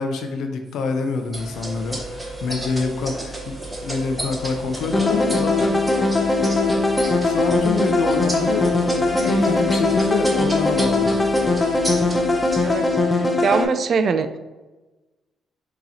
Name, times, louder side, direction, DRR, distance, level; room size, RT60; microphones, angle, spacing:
voice 1, 0.0-5.8 7.2-11.2, left 4 dB, 75° left, 6 dB, 0.6 m, -26 dB
sound 1, 1.3-12.7, right 1 dB, 15° right, 1.3 m, -32 dB
sound 2, 4.9-13.6, left 2 dB, 20° left, 0.6 m, -20 dB
voice 2, 12.6-14.3, right 5 dB, 55° right, 10 dB, 0.3 m, -23 dB
6.3 x 2.9 x 2.8 m, 1.1 s
cardioid pair, 90°, 0 cm